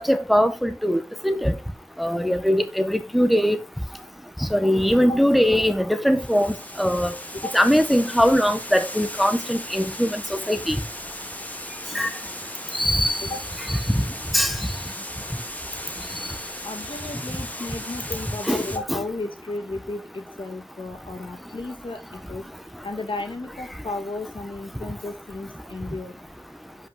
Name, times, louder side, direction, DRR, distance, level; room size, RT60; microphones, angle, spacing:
voice 1, 0.1-1.5 2.0-3.6 4.5-7.1 7.5-10.7 11.9-12.1 12.7-13.2 14.3-14.5 18.5-19.0, equal, ahead, 1.1 m, -21 dB
Water, 6.2-18.8, left 1 dB, 15° left, 2.3 m, -36 dB
voice 2, 16.6-22.5 22.8-26.2, left 2 dB, 70° left, 2.3 m, -34 dB
10.5 x 5.7 x 3.8 m
wide cardioid pair, 55°, 9 cm